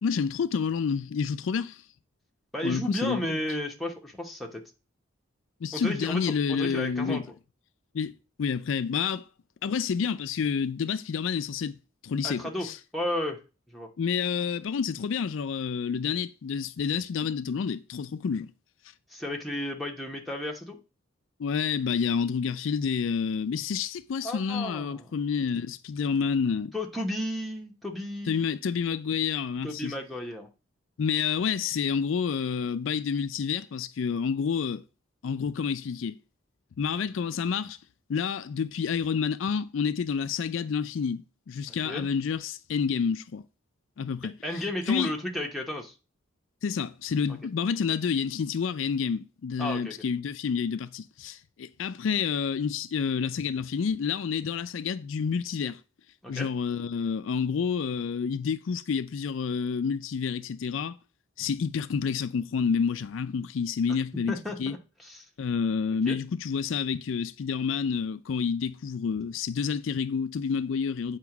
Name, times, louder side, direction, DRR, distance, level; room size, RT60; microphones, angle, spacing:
voice 1, 0.0-1.8 2.6-3.4 5.6-7.2 7.9-9.3 9.6-11.8 12.0-12.8 14.0-18.5 21.4-26.7 28.3-29.9 31.0-34.8 35.2-36.2 36.8-37.8 38.1-43.4 44.0-45.1 46.6-55.8 56.3-61.0 61.4-64.8 65.4-71.2, left 6 dB, 70° left, 0.4 m, -29 dB
voice 2, 2.5-4.6 5.7-7.2 12.2-12.7 12.9-13.4 13.7-13.9 19.1-20.8 24.2-25.1 26.7-28.4 29.6-30.5 41.7-42.0 44.4-45.9 49.6-50.0 56.2-56.5 64.3-64.8 65.0-65.2 66.0-66.2, left 1 dB, ahead, 1.0 m, -33 dB
8.1 x 2.9 x 5.9 m
head